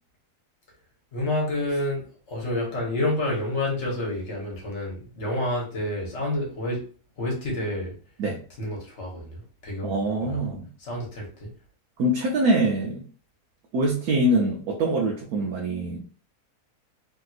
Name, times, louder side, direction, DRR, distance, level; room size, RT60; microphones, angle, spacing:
voice 1, 1.1-6.9 7.2-7.9 8.6-10.0 10.2-10.4 10.8-11.5, left 1 dB, 50° left, -1 dB, 1.4 m, -29 dB
voice 2, 9.8-10.7 12.0-13.1 13.7-16.0, right 1 dB, 75° right, -1 dB, 1.1 m, -24 dB
3.3 x 2.8 x 2.3 m, 0.40 s
omnidirectional pair, 1.6 m